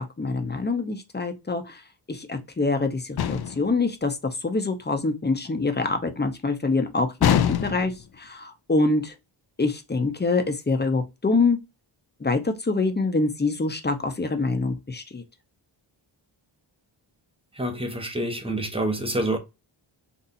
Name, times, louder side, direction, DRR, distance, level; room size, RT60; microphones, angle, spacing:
voice 1, 0.0-1.8 2.1-9.1 9.6-11.6 12.2-15.2, left 3 dB, 20° left, 0.8 m, -25 dB
sound 1, 3.2-3.7 7.2-8.0, left 9 dB, 50° left, 0.5 m, -23 dB
voice 2, 17.6-19.4, right 1 dB, 10° right, 0.9 m, -27 dB
4.0 x 2.6 x 2.6 m
wide cardioid pair, 80°, 49 cm